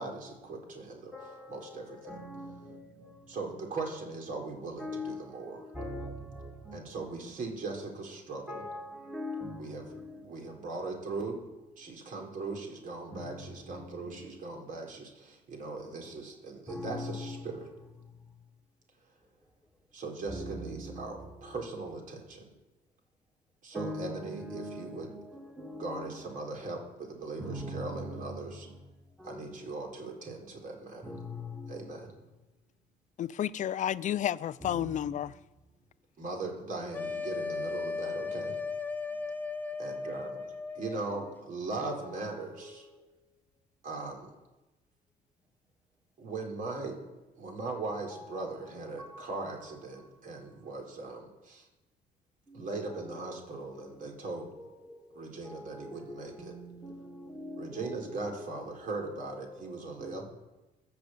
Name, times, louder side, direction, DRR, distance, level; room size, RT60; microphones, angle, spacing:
voice 1, 0.0-1.1 1.5-2.1 3.3-5.7 6.7-8.6 9.6-9.8 10.2-11.4 11.8-17.7 19.9-22.4 23.6-25.1 25.8-28.7 29.2-31.1 31.7-32.1 36.2-38.6 39.8-40.4 40.7-42.9 43.8-44.3 46.2-47.0 47.4-51.7 52.5-54.5 55.1-56.5 57.6-60.2, right 3 dB, 50° right, 4.4 m, -39 dB
voice 2, 1.1-3.1 3.4-3.5 3.9-4.0 4.8-5.2 5.5-6.8 7.2-7.3 8.5-10.2 13.1-14.3 16.7-17.5 20.3-21.3 23.7-26.2 27.4-28.4 29.2-29.7 31.0-32.1 34.6-35.1 38.2-38.3 42.0-42.8 48.1-48.3 49.0-49.2 52.7-53.9 54.6-55.0 55.4-58.8 59.1-59.7 60.0-60.2, left 1 dB, 5° right, 2.4 m, -43 dB
voice 3, 33.2-35.3, left 10 dB, 45° left, 0.5 m, -31 dB
sound 1, 36.9-41.3, left 4 dB, 10° left, 1.0 m, -36 dB
20.0 x 7.1 x 7.9 m
cardioid pair, 110°, 17 cm